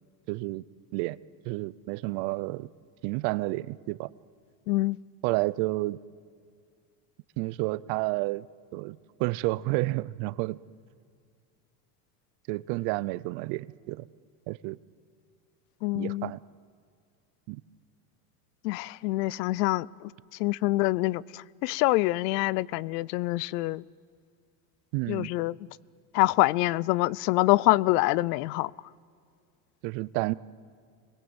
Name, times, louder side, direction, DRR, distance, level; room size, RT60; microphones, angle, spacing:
voice 1, 0.3-0.6 0.9-1.2 1.4-2.7 3.0-4.1 5.2-6.0 7.4-8.5 8.7-10.6 12.5-14.1 14.5-14.8 15.9-16.4 17.5-17.6 24.9-25.3 29.8-30.3, right 21 dB, 60° right, 0.7 m, -30 dB
voice 2, 4.7-5.0 15.8-16.3 18.6-20.1 20.4-23.8 25.1-25.6 26.1-28.7, left 19 dB, 80° left, 0.6 m, -25 dB
26.0 x 21.0 x 8.0 m
supercardioid pair, 125°, 47 cm